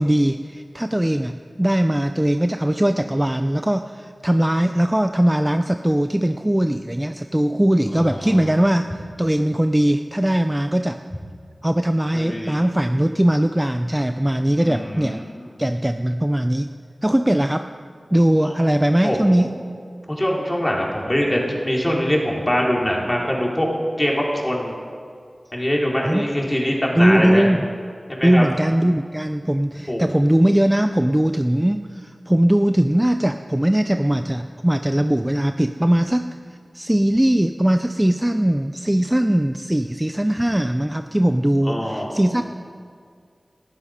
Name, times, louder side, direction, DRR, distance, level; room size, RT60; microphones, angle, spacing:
voice 1, 0.0-11.0 11.6-15.2 15.6-16.7 17.0-17.7 18.1-19.5 26.0-26.3 26.9-27.7 28.2-36.3 36.7-42.4, right 1 dB, 15° right, 7 dB, 0.5 m, -20 dB
voice 2, 7.9-8.4 12.1-12.6 14.5-15.3 18.4-18.5 19.0-19.4 20.2-23.7 24.0-24.7 25.5-27.5 28.1-28.4 29.9-30.1 41.6-42.4, equal, 15° left, -2 dB, 3.7 m, -23 dB
19.0 x 13.0 x 5.1 m, 2.2 s
wide cardioid pair, 50°, 0 cm